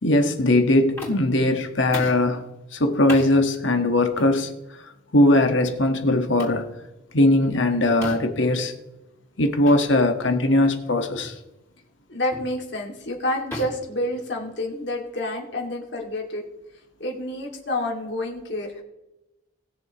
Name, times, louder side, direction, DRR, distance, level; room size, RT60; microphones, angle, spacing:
voice 1, 0.0-2.4 2.7-4.5 5.1-6.6 7.1-8.7 9.4-11.4, left 1 dB, 90° left, 6 dB, 1.5 m, -20 dB
sound 1, 1.0-1.4 1.9-2.3 3.1-3.3 4.2-4.4 5.2-5.4 6.4-6.6 8.0-8.4 9.6-9.8 10.2-10.4 11.1-11.4 12.3-12.6 13.5-14.7, left 1 dB, 15° left, 3.6 m, -36 dB
voice 2, 12.1-16.4 17.0-18.7, left 1 dB, 70° left, 0 dB, 2.3 m, -28 dB
20.0 x 7.2 x 3.0 m, 0.97 s
head